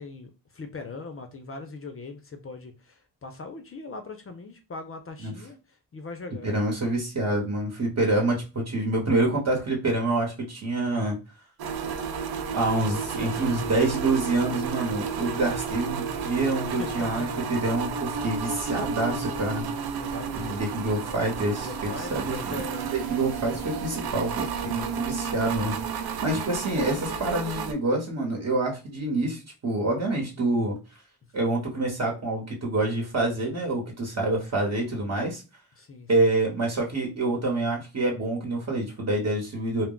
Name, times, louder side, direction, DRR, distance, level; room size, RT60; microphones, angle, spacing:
voice 1, 0.0-5.6 5.9-6.5 16.7-17.3 19.9-20.6 21.5-22.9 24.0-24.3 35.8-36.1, left 3 dB, 35° left, 0.5 m, -40 dB
voice 2, 6.4-11.2 12.5-19.7 20.3-22.7 22.9-30.8 31.3-35.4 36.1-39.9, right 2 dB, 45° right, 1.0 m, -27 dB
sound 1, 11.6-27.7, right 6 dB, 75° right, 0.5 m, -32 dB
2.2 x 2.0 x 3.7 m
cardioid pair, 85°, 38 cm